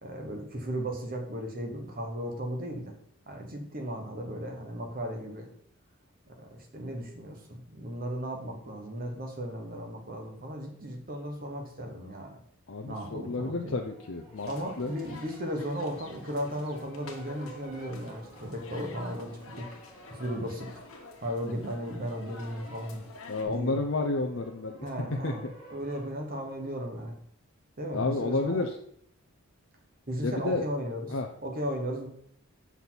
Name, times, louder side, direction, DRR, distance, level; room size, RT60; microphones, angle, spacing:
voice 1, 0.0-2.9 3.3-5.5 6.4-12.4 12.9-13.7 14.5-19.7 20.1-20.8 21.2-23.0 23.5-23.7 24.8-25.4 25.7-27.1 27.8-28.7 30.1-31.1 31.4-32.1, equal, 40° right, 3 dB, 1.4 m, -35 dB
voice 2, 12.7-14.5 14.8-14.9 23.3-24.9 25.2-25.3 27.9-28.7 30.2-30.6 31.1-31.3, left 3 dB, 60° left, 2 dB, 0.6 m, -30 dB
sound 1, 13.7-26.8, right 1 dB, 25° right, 3.6 m, -53 dB
sound 2, 14.4-23.4, left 3 dB, 80° left, 1.5 m, -49 dB
7.0 x 6.1 x 4.1 m, 0.66 s
head